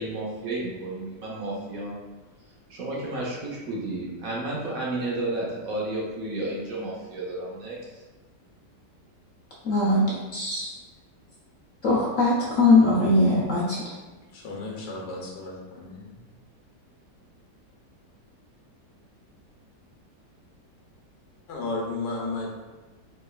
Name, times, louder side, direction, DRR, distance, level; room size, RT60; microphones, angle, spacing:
voice 1, 0.0-2.0 2.7-8.0, right 2 dB, 60° right, -5 dB, 1.1 m, -32 dB
voice 2, 9.6-10.7 11.8-13.8, left 2 dB, 65° left, -6 dB, 0.8 m, -21 dB
voice 3, 14.3-16.2 21.5-22.5, left 3 dB, 85° left, -1 dB, 1.4 m, -33 dB
4.3 x 3.2 x 2.3 m, 1.2 s
omnidirectional pair, 1.9 m